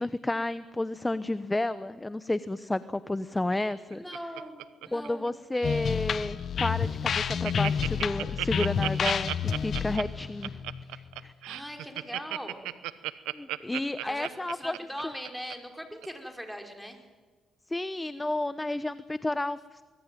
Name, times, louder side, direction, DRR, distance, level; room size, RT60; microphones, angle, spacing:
voice 1, 0.0-4.0 4.9-10.6 10.9-11.3 13.3-14.8 17.7-19.8, left 2 dB, 15° left, 14 dB, 1.0 m, -31 dB
Laughter, 3.5-5.3 5.5-5.9 6.4-6.5 6.8-6.9 7.1-15.5 16.0-16.1, right 16 dB, 90° right, 0.9 m, -35 dB
voice 2, 3.9-5.3 11.4-12.7 14.0-17.0, equal, ahead, 4 dB, 5.3 m, -40 dB
sound 1, 5.6-11.3, left 7 dB, 60° left, 1.1 m, -30 dB
24.0 x 21.0 x 9.3 m, 1.4 s
supercardioid pair, 60°, 0 cm